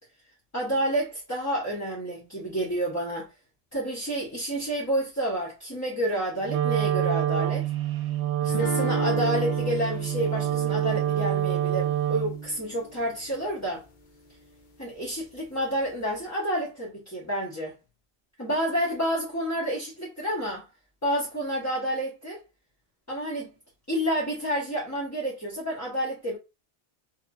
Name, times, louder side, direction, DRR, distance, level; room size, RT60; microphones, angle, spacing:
voice 1, 0.5-3.3 3.7-7.7 8.4-13.8 14.8-17.7 18.4-20.7 21.0-22.4 23.1-23.5 23.9-26.4, equal, 20° left, 0.6 m, -29 dB
Wind instrument woodwind instrument, 6.4-12.5, right 11 dB, 85° right, 0.9 m, -26 dB
sound 1, 8.5-13.4, left 1 dB, 55° left, 0.6 m, -37 dB
2.8 x 2.5 x 2.2 m
omnidirectional pair, 1.1 m